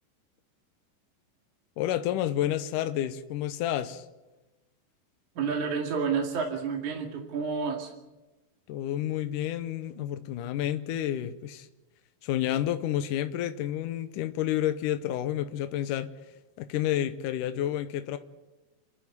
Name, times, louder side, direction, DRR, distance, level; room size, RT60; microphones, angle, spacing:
voice 1, 1.8-4.1 8.7-11.7 12.2-16.1 16.6-18.2, left 12 dB, 85° left, 10 dB, 1.8 m, -30 dB
voice 2, 5.4-7.9, right 5 dB, 50° right, 0 dB, 3.3 m, -30 dB
27.5 x 12.0 x 9.4 m, 1.1 s
omnidirectional pair, 4.8 m